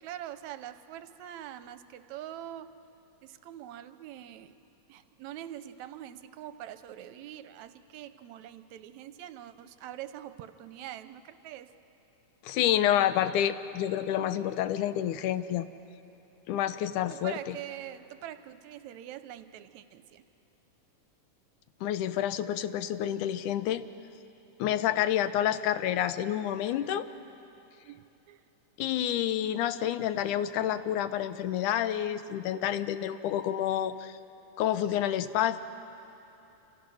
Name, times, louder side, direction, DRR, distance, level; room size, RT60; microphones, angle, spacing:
voice 1, 0.0-2.7 3.2-4.6 4.9-11.7 17.1-20.2 27.8-28.4, right 11 dB, 75° right, 12 dB, 1.9 m, -44 dB
voice 2, 12.4-15.7 16.5-17.6 21.8-23.9 24.6-27.1 28.8-34.2 34.6-35.6, left 11 dB, 85° left, 12 dB, 2.3 m, -28 dB
28.0 x 26.0 x 6.3 m, 3.0 s
omnidirectional pair, 3.5 m